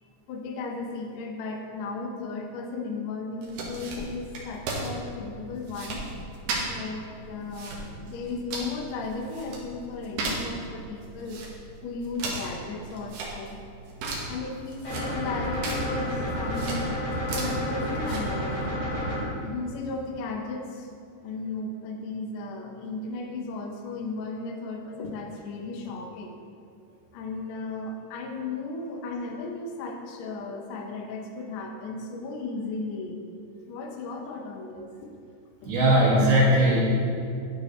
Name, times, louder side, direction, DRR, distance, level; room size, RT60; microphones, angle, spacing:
voice 1, 0.3-6.2 6.7-11.4 11.8-13.6 14.1-17.0 17.3-18.7 19.4-20.9 21.2-26.4 27.1-33.2 33.7-35.1 35.6-35.7, left 3 dB, 85° left, 2 dB, 1.5 m, -35 dB
sound 1, 3.4-18.6, right 2 dB, 85° right, 3.3 m, -37 dB
sound 2, 14.8-19.2, equal, 50° left, 2.8 m, -30 dB
voice 2, 35.6-36.8, right 1 dB, 65° right, -7 dB, 3.4 m, -19 dB
12.0 x 6.8 x 3.2 m, 2.5 s
omnidirectional pair, 4.3 m